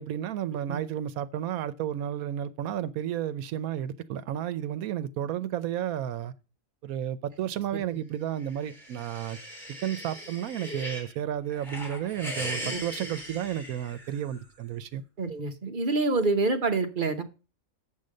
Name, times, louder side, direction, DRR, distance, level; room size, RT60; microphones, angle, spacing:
voice 1, 0.0-6.3 6.8-9.4 9.8-15.0, right 10 dB, 80° right, 1.1 m, -32 dB
sound 1, 8.4-11.1 11.5-14.4, equal, ahead, 3.3 m, -39 dB
voice 2, 15.2-17.2, right 3 dB, 40° right, 1.0 m, -27 dB
7.5 x 5.6 x 6.4 m
omnidirectional pair, 1.5 m